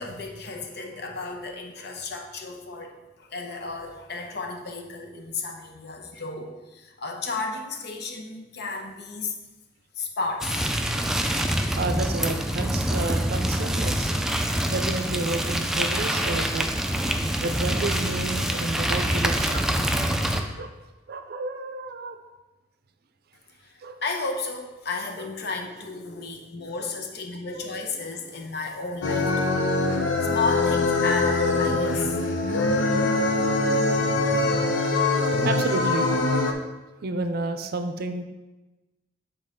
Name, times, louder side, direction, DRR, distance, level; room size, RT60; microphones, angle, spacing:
voice 1, 0.0-9.3 9.9-10.7 23.6-29.6 30.2-32.2, left 3 dB, 60° left, 3 dB, 0.9 m, -33 dB
sound 1, 10.4-20.4, equal, 5° right, 0.4 m, -25 dB
voice 2, 11.7-14.1 14.7-16.7 17.4-19.7 20.3-20.7 21.1-22.2 23.8-24.0 26.8-26.9 27.5-27.9 32.6-32.7 35.4-36.2 37.0-38.2, right 2 dB, 55° right, 9 dB, 0.5 m, -31 dB
sound 2, 29.0-36.5, left 2 dB, 85° left, 0.7 m, -23 dB
7.8 x 4.0 x 3.7 m, 1.1 s
head